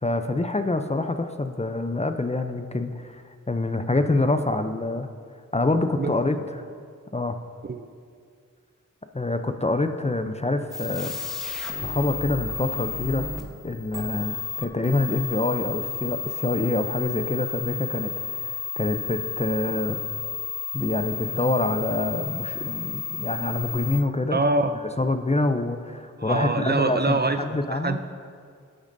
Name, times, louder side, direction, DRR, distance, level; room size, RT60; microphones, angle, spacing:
voice 1, 0.0-5.1 5.5-6.4 7.1-7.4 9.1-11.1 11.8-13.3 13.6-20.0 20.7-24.4 25.0-28.0, left 2 dB, 20° left, 8 dB, 0.5 m, -26 dB
sound 1, 10.7-24.0, left 5 dB, ahead, 1.4 m, -32 dB
voice 2, 24.3-24.7 26.2-28.0, right 2 dB, 35° right, 9 dB, 0.5 m, -24 dB
11.5 x 8.7 x 2.7 m, 2.1 s
cardioid pair, 45°, 32 cm